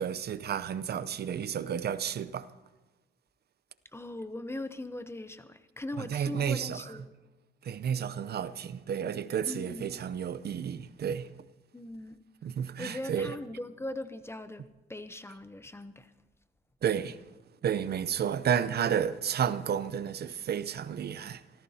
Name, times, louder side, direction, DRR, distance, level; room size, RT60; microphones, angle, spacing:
voice 1, 0.0-2.5 5.9-7.0 7.6-11.3 12.4-13.4 16.8-17.2 17.6-21.4, right 8 dB, 55° right, 0.7 m, -31 dB
voice 2, 3.9-7.0 9.5-9.8 11.7-12.2 12.8-16.1, left 2 dB, 10° left, 0.8 m, -40 dB
28.0 x 15.0 x 2.8 m
cardioid pair, 90°, 20 cm